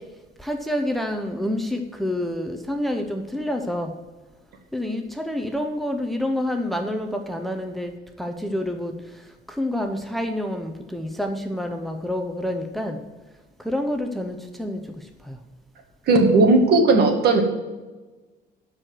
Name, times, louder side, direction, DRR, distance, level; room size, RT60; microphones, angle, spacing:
voice 1, 0.4-3.9 4.7-7.9 8.2-8.9 9.5-13.0 13.6-14.8 15.3-15.4, left 1 dB, ahead, 4 dB, 0.8 m, -28 dB
voice 2, 16.1-17.4, right 3 dB, 60° right, 5 dB, 2.0 m, -16 dB
12.5 x 4.8 x 7.7 m, 1.2 s
cardioid pair, 135°, 19 cm